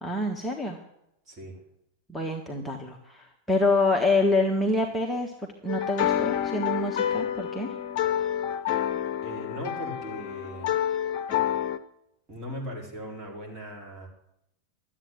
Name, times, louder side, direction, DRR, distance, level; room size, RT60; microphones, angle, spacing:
voice 1, 0.0-0.8 2.1-5.3 5.6-7.7, left 2 dB, 5° left, -1 dB, 1.5 m, -26 dB
voice 2, 1.3-1.6 9.2-10.8 12.3-14.1, equal, 25° right, 0 dB, 4.5 m, -38 dB
sound 1, 5.7-11.8, left 10 dB, 45° left, 0.9 m, -28 dB
12.5 x 8.6 x 9.9 m, 0.80 s
figure-of-eight pair, 90°, 0 cm